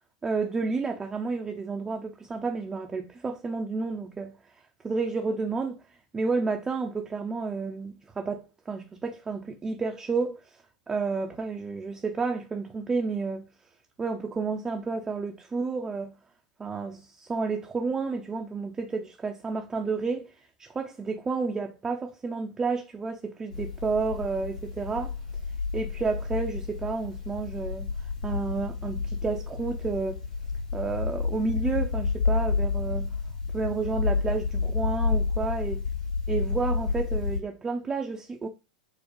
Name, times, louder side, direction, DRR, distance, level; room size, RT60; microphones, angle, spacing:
voice 1, 0.2-4.3 4.8-5.8 6.1-10.5 10.9-13.5 14.0-16.1 16.6-25.1 25.7-27.9 28.2-30.2 30.7-33.1 33.5-35.8 36.3-38.5, right 4 dB, 15° right, 0.4 m, -31 dB
sound 1, 23.5-37.4, left 4 dB, 80° left, 1.6 m, -30 dB
4.5 x 2.1 x 3.0 m
figure-of-eight pair, 95°, 4 cm